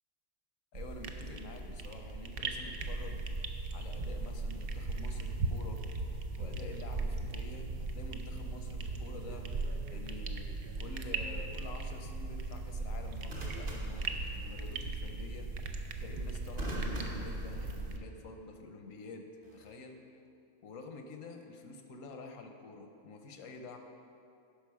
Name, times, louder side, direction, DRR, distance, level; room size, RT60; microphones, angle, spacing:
voice 1, 0.7-3.2 3.7-5.9 6.4-9.5 9.9-10.5 10.8-15.5 16.0-20.0 20.6-23.8, left 3 dB, 85° left, 5 dB, 1.2 m, -48 dB
sound 1, 0.7-18.0, right 3 dB, 60° right, 0.7 m, -38 dB
sound 2, 9.4-9.8 13.3-14.8 16.6-18.2 19.4-19.8, equal, 35° right, 1.1 m, -43 dB
11.5 x 5.2 x 4.8 m, 2.6 s
omnidirectional pair, 1.3 m